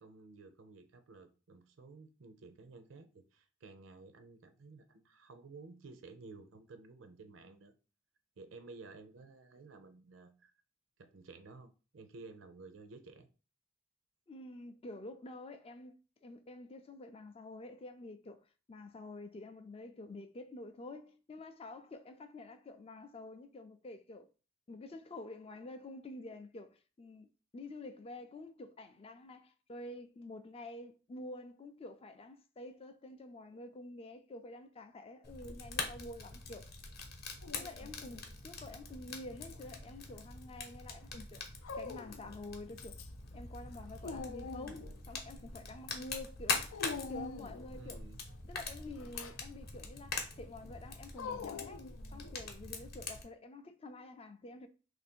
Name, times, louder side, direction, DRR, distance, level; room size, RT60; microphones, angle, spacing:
voice 1, 0.0-7.7 8.4-10.5 11.0-13.3 44.1-44.3 47.7-48.2, right 3 dB, 70° right, 0.6 m, -54 dB
voice 2, 14.3-15.9 16.2-24.3 24.7-27.3 27.5-36.7 37.6-41.4 41.8-43.0 43.3-48.0 48.4-54.7, left 2 dB, 30° left, 0.4 m, -49 dB
Fire, 35.2-53.2, left 4 dB, 50° left, 0.8 m, -43 dB
Dog, 37.4-38.2 39.3-40.2 41.6-42.4 42.8-43.3 43.6-45.0 46.7-47.8 48.9-49.4 51.1-52.5, left 4 dB, 85° left, 0.4 m, -45 dB
3.0 x 2.6 x 4.3 m
head